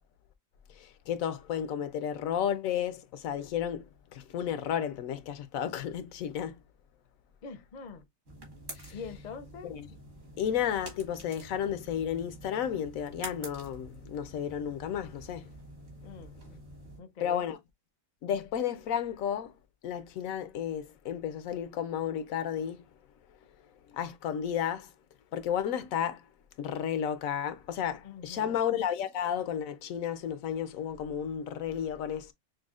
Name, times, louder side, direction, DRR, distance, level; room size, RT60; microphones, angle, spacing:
voice 1, 0.8-3.9 4.1-6.5 8.9-9.0 9.6-9.8 10.4-15.4 17.2-17.6 18.2-19.5 19.8-22.8 23.9-24.9 25.3-26.2 26.6-32.3, left 9 dB, 85° left, 1.0 m, -32 dB
voice 2, 7.4-8.0 8.9-9.8 16.0-16.4 17.0-17.4 28.0-28.6, left 5 dB, 45° left, 0.6 m, -44 dB
sound 1, 8.3-17.0, right 2 dB, 60° right, 2.0 m, -48 dB
6.2 x 2.1 x 2.4 m
omnidirectional pair, 1.4 m